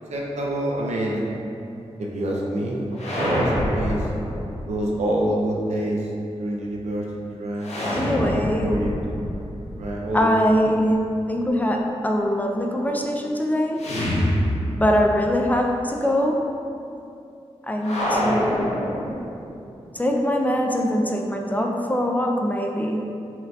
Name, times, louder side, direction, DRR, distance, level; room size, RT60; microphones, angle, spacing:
voice 1, 0.1-1.2 2.0-2.8 3.1-4.1 4.7-6.1 6.4-8.9 9.8-10.3, right 1 dB, 85° right, -2 dB, 0.5 m, -26 dB
sound 1, 2.9-4.9 7.6-10.6 13.8-15.2 15.4-15.5 17.8-19.6, equal, 75° left, 0.7 m, -26 dB
voice 2, 7.9-8.8 10.1-11.0 11.3-14.0 14.7-16.6 17.7-19.0 19.9-23.1, equal, 15° left, 2 dB, 0.3 m, -23 dB
4.4 x 2.5 x 2.3 m, 2.7 s
cardioid pair, 50°, 11 cm